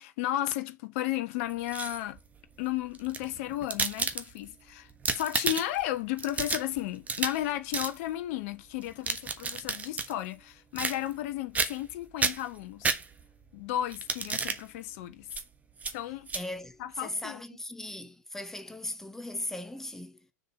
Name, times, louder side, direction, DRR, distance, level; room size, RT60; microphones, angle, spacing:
voice 1, 0.0-2.2 2.6-13.0 13.5-15.3 15.9-16.3 16.8-17.4, left 13 dB, 50° left, 1.1 m, -34 dB
sound 1, 1.5-2.2 2.9-4.6 4.9-5.8 6.2-7.5 7.7-8.0 8.8-10.1 10.8-11.3 11.6-11.9 12.2-13.4 13.9-14.6 15.3-15.4 15.8-15.9 16.3-16.4, right 4 dB, 15° right, 1.3 m, -31 dB
voice 2, 16.3-20.2, left 1 dB, 5° left, 1.2 m, -38 dB
6.7 x 5.4 x 4.7 m
figure-of-eight pair, 90°, 9 cm